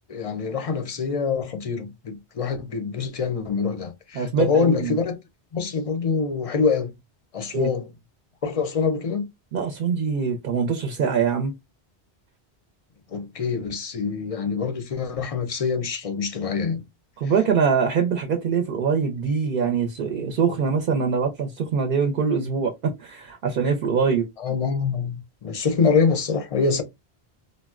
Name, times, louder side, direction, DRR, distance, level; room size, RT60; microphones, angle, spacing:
voice 1, 0.1-5.2 5.5-6.9 7.3-7.9 8.4-9.2 13.1-16.8 24.4-26.8, left 5 dB, 50° left, 0.4 m, -25 dB
voice 2, 4.1-4.9 7.5-7.7 9.5-11.5 17.2-24.2, right 6 dB, 60° right, 0.7 m, -23 dB
3.8 x 2.0 x 2.3 m
omnidirectional pair, 1.1 m